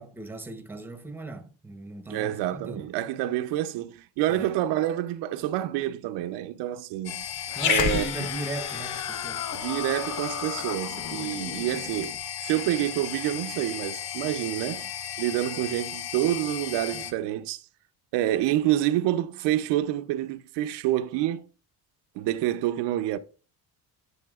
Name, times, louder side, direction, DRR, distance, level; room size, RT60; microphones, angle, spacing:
voice 1, 0.0-2.9 4.3-4.5 7.5-9.5, right 2 dB, 5° right, 0.8 m, -38 dB
voice 2, 2.1-7.2 7.6-8.1 9.5-14.9 15.2-17.6 18.1-21.4 22.2-23.2, right 13 dB, 80° right, 0.7 m, -28 dB
sound 1, 7.0-17.1, left 10 dB, 70° left, 1.0 m, -36 dB
Growling, 7.5-12.1, left 7 dB, 45° left, 0.8 m, -31 dB
11.0 x 5.7 x 2.4 m
cardioid pair, 105°, 41 cm